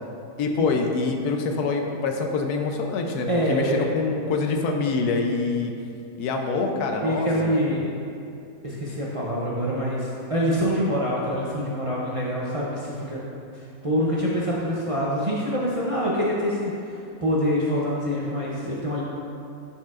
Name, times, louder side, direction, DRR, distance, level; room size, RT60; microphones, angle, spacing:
voice 1, 0.4-5.7 6.2-7.6, left 4 dB, 85° left, 3 dB, 1.2 m, -25 dB
voice 2, 3.3-3.9 7.0-7.8 8.6-13.2 13.5-16.7 17.2-19.0, equal, 45° right, -6 dB, 0.4 m, -25 dB
10.5 x 4.5 x 2.4 m, 2.6 s
omnidirectional pair, 1.6 m